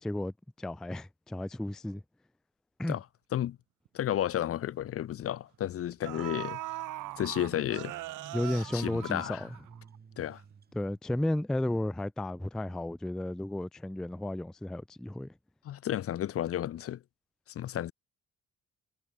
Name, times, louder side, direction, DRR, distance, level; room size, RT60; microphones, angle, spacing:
voice 1, 0.0-2.0 2.8-3.0 8.3-9.5 10.7-15.3, left 1 dB, ahead, 0.3 m, -33 dB
voice 2, 3.9-6.6 7.2-7.9 8.7-9.4 10.2-10.4 15.7-17.0 17.5-17.9, left 11 dB, 50° left, 0.5 m, -32 dB
sound 1, 3.9-4.0 4.3-4.5 5.5-5.6 6.0-10.0 10.3-10.4, right 16 dB, 85° right, 1.6 m, -41 dB
sound 2, 5.9-6.0 6.3-11.0, right 6 dB, 30° right, 1.1 m, -53 dB
cardioid pair, 90°, 30 cm